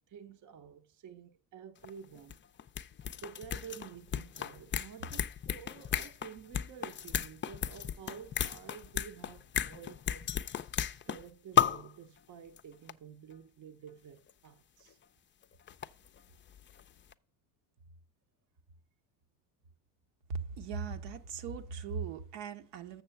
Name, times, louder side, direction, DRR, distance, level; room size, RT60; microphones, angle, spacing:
voice 1, 0.0-2.4 3.2-10.4 11.0-15.0, right 7 dB, 45° right, 0.8 m, -50 dB
sound 1, 1.8-1.9 2.2-11.3 11.6-11.9 12.6-12.7 12.9-13.0 14.3-14.4 15.4-16.8 17.1-17.2, left 9 dB, 25° left, 0.5 m, -34 dB
voice 2, 20.6-23.0, right 6 dB, 70° right, 1.1 m, -39 dB
7.0 x 6.7 x 5.7 m
supercardioid pair, 80°, 44 cm